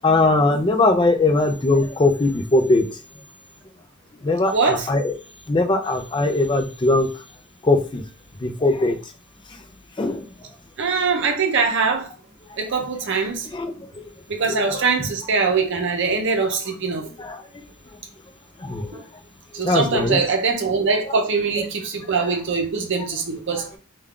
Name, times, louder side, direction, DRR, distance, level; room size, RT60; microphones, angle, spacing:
voice 1, 0.0-3.0 4.2-5.1 5.5-7.1 7.6-8.0 8.4-9.0 10.0-10.3 13.5-14.0 14.5-14.8 16.4-16.5 17.2-17.4 18.6-18.9 19.6-20.2 22.2-22.3, left 2 dB, 20° left, 0.4 m, -20 dB
voice 2, 4.5-4.9 10.8-12.1 12.6-13.5 14.3-17.1 18.9-19.0 19.5-23.7, right 4 dB, 55° right, 0.7 m, -22 dB
3.4 x 2.3 x 3.6 m
head